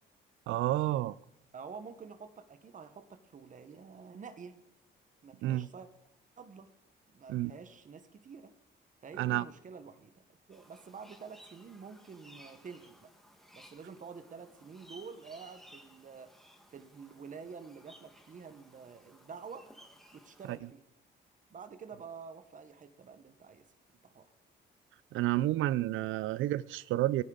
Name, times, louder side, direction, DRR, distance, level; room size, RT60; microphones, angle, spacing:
voice 1, 0.5-1.2 5.4-5.7 7.3-7.5 9.2-9.4 20.5-20.6 25.1-27.2, right 15 dB, 80° right, 0.4 m, -30 dB
voice 2, 1.5-4.6 5.2-5.9 6.4-6.7 7.1-8.5 9.0-13.1 13.5-16.3 16.7-19.7 20.1-20.8 21.5-23.7 24.0-24.3, right 5 dB, 40° right, 1.1 m, -48 dB
sound 1, 10.5-20.6, equal, ahead, 1.5 m, -58 dB
17.5 x 9.2 x 3.9 m
cardioid pair, 90°, 20 cm